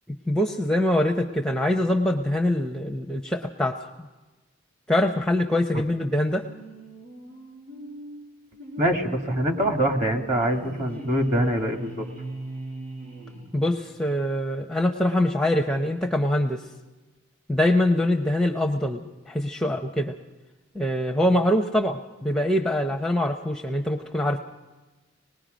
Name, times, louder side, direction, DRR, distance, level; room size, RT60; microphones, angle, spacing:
voice 1, 0.1-3.8 4.9-6.5 13.5-16.6 17.5-20.2 20.7-24.4, left 1 dB, 5° left, 4 dB, 0.6 m, -24 dB
sound 1, 6.4-14.0, right 2 dB, 85° right, 6.6 m, -39 dB
voice 2, 8.8-12.0, right 1 dB, 35° right, 3 dB, 1.8 m, -24 dB
25.5 x 20.0 x 5.1 m, 1.2 s
head